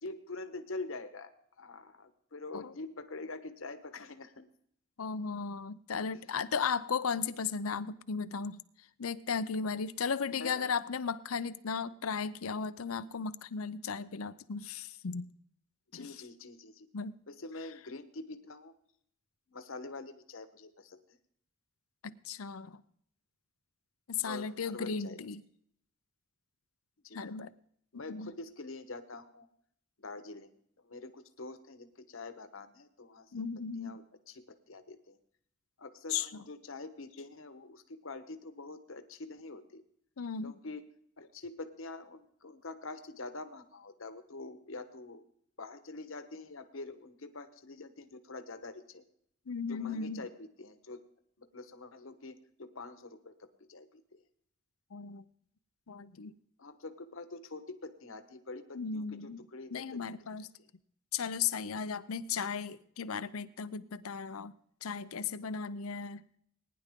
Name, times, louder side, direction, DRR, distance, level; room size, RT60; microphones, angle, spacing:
voice 1, 0.0-4.5 10.4-10.7 15.9-16.9 17.3-18.7 19.5-21.0 24.2-25.2 27.0-27.2 27.9-29.5 30.0-30.6 30.8-33.4 33.8-35.2 35.8-39.8 40.4-40.8 41.2-45.2 45.6-49.0 49.7-51.0 51.4-53.4 53.7-54.2 56.6-60.0, left 3 dB, 70° left, 9 dB, 1.2 m, -45 dB
voice 2, 5.0-8.6 9.0-15.3 15.9-16.2 16.9-17.2 22.0-22.8 24.1-25.4 27.1-27.5 27.9-28.3 33.3-34.0 36.1-36.4 40.2-40.6 49.5-50.3 54.9-55.2 55.9-56.3 58.7-59.4 59.7-60.5 61.1-64.5 64.8-66.2, left 6 dB, 85° left, 15 dB, 0.7 m, -36 dB
19.5 x 10.5 x 3.7 m, 0.68 s
head